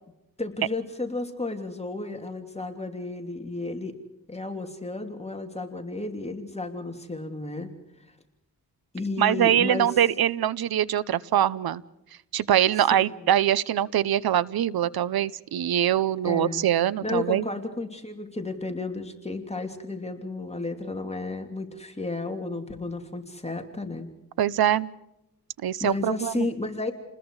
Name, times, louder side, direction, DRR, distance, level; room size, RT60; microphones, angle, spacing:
voice 1, 0.4-3.9 4.3-7.7 8.9-9.9 13.0-13.3 16.2-16.6 17.0-24.1 25.8-26.9, left 2 dB, 15° left, 4 dB, 3.0 m, -32 dB
voice 2, 9.2-11.8 12.3-17.4 24.4-24.9 25.6-26.5, right 11 dB, 85° right, 19 dB, 0.9 m, -23 dB
30.0 x 20.5 x 4.9 m, 0.89 s
cardioid pair, 85°, 36 cm